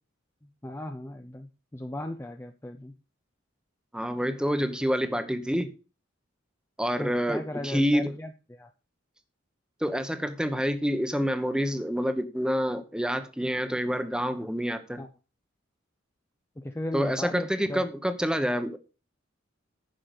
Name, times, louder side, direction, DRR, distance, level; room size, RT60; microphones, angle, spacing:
voice 1, 0.6-2.9 7.0-8.7 15.0-15.1 16.6-17.8, left 1 dB, 15° left, 0.6 m, -37 dB
voice 2, 3.9-5.7 6.8-8.2 9.8-15.0 16.9-18.8, equal, 5° right, 1.0 m, -27 dB
10.5 x 5.9 x 5.0 m
head